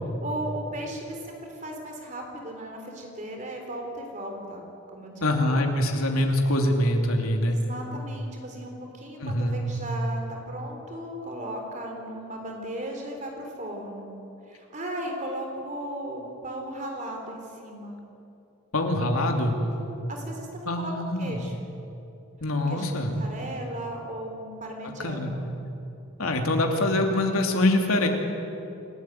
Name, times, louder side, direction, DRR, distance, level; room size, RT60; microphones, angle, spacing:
voice 1, 0.2-4.6 4.9-5.5 7.4-14.1 14.5-18.0 19.6-20.9 21.2-21.6 22.5-25.5, right 1 dB, 35° right, 2 dB, 4.0 m, -36 dB
voice 2, 5.2-7.6 9.2-9.6 18.7-19.6 20.6-21.4 22.4-23.1 25.0-25.3 26.2-28.1, left 1 dB, 80° left, 2 dB, 2.9 m, -24 dB
28.5 x 13.0 x 9.3 m, 2.8 s
head